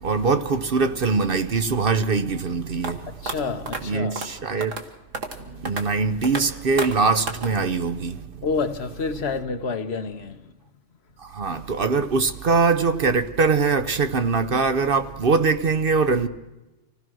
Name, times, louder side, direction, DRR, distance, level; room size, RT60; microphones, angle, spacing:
voice 1, 0.0-3.2 3.8-4.7 5.6-8.3 11.2-16.3, right 4 dB, 50° right, 0.9 m, -22 dB
sound 1, 2.8-2.9 3.3-3.4 3.7-3.8 4.2-4.3 4.6-4.8 5.1-5.4 5.7-5.8 6.2-6.4 6.8-6.9 7.3-7.5, right 3 dB, 90° right, 2.0 m, -30 dB
voice 2, 3.2-4.2 5.4-5.9 8.4-10.5, left 4 dB, 60° left, 1.2 m, -29 dB
25.5 x 16.5 x 6.2 m
omnidirectional pair, 1.3 m